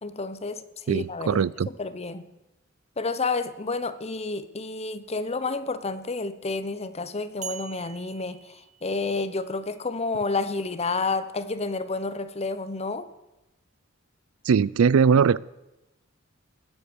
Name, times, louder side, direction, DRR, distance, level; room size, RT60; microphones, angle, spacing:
voice 1, 0.0-2.3 3.0-13.1, left 3 dB, 30° left, 13 dB, 0.8 m, -30 dB
voice 2, 0.9-1.7 14.4-15.4, right 6 dB, 90° right, 23 dB, 0.4 m, -20 dB
sound 1, 7.4-9.5, right 9 dB, 35° right, 1.1 m, -42 dB
19.5 x 8.1 x 6.9 m, 0.99 s
head